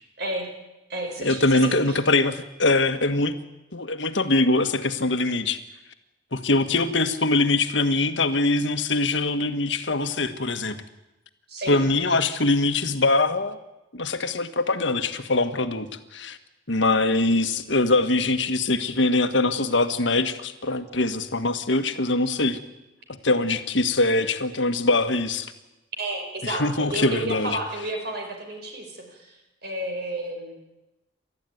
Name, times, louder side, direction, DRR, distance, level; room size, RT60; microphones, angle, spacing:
voice 1, 0.2-0.5 0.9-2.0 11.5-11.8 12.1-12.2 26.0-30.6, right 1 dB, 55° right, 3 dB, 5.1 m, -32 dB
voice 2, 1.2-3.4 3.7-5.6 6.3-10.8 11.7-13.6 13.9-16.4 16.7-22.6 23.1-25.5 26.4-27.6, left 2 dB, 70° left, 9 dB, 1.6 m, -23 dB
29.0 x 13.5 x 9.4 m, 1.0 s
head